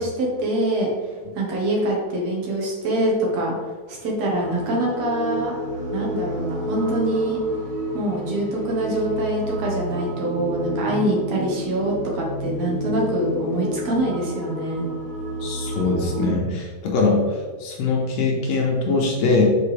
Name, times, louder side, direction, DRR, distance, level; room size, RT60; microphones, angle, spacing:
voice 1, 0.0-3.5 3.9-5.5 5.9-7.4 7.9-14.9, right 1 dB, 65° right, -2 dB, 2.2 m, -24 dB
sound 1, 4.4-16.3, equal, 15° right, 0.5 m, -30 dB
voice 2, 15.4-17.2 17.6-19.4, left 3 dB, 70° left, -1 dB, 1.8 m, -22 dB
5.8 x 5.2 x 3.3 m, 1.5 s
omnidirectional pair, 3.5 m